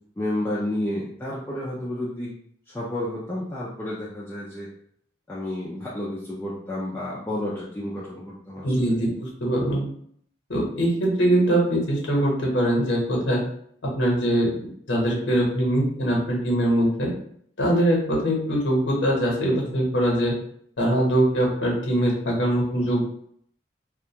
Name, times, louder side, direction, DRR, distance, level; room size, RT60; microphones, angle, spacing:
voice 1, 0.2-2.3 2.7-4.7 5.3-9.0, left 1 dB, 10° left, -7 dB, 0.4 m, -31 dB
voice 2, 8.6-9.8 10.5-13.4 13.8-17.1 17.6-20.3 20.8-23.0, right 1 dB, 90° left, -2 dB, 0.9 m, -22 dB
2.4 x 2.2 x 2.8 m, 0.65 s
head